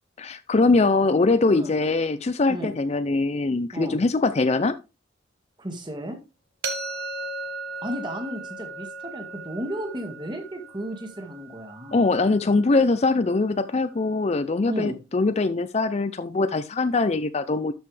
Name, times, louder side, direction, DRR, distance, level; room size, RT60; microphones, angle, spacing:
voice 1, 0.2-4.8 11.9-17.7, left 3 dB, 35° left, 0.4 m, -22 dB
voice 2, 5.6-6.2 7.8-12.0 14.7-15.0, equal, 25° right, 1.8 m, -34 dB
sound 1, 6.6-12.5, right 3 dB, 55° right, 1.5 m, -36 dB
12.5 x 5.5 x 3.3 m
head